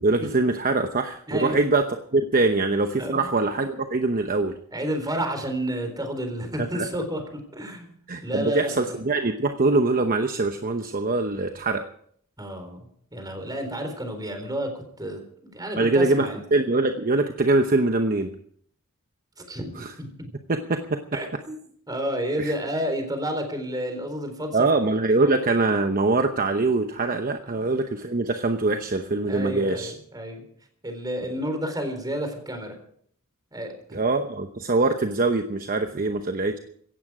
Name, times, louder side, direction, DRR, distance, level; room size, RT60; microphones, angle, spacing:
voice 1, 0.0-4.6 6.6-6.9 8.1-11.8 15.7-18.3 19.7-19.9 20.5-21.2 22.4-22.5 24.5-29.9 33.9-36.6, right 3 dB, 40° right, 6 dB, 0.9 m, -23 dB
voice 2, 1.3-1.6 3.0-3.2 4.7-7.9 8.2-9.0 12.4-16.4 19.4-20.1 21.1-21.5 21.9-24.6 25.2-25.5 27.5-27.6 29.3-30.4 30.8-32.8 33.5-34.0, equal, 20° right, 6 dB, 4.0 m, -31 dB
17.0 x 14.5 x 4.9 m, 0.63 s
head